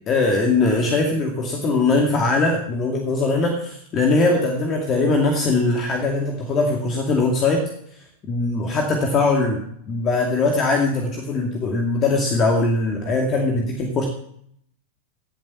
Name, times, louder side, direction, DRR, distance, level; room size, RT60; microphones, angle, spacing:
voice 1, 0.1-7.7 8.3-9.6 9.9-14.1, left 3 dB, 30° left, 2 dB, 2.4 m, -21 dB
17.5 x 7.8 x 5.9 m, 0.68 s
figure-of-eight pair, 90°, 0 cm